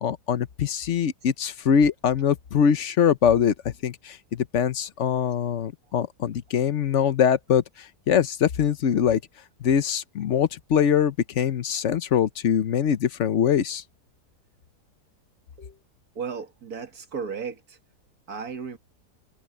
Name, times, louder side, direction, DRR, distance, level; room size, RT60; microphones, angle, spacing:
voice 1, 0.0-9.2 9.6-13.8, left 8 dB, 55° left, 1.0 m, -23 dB
voice 2, 16.2-17.8 18.3-18.8, right 6 dB, 60° right, 2.3 m, -35 dB
omnidirectional pair, 1.8 m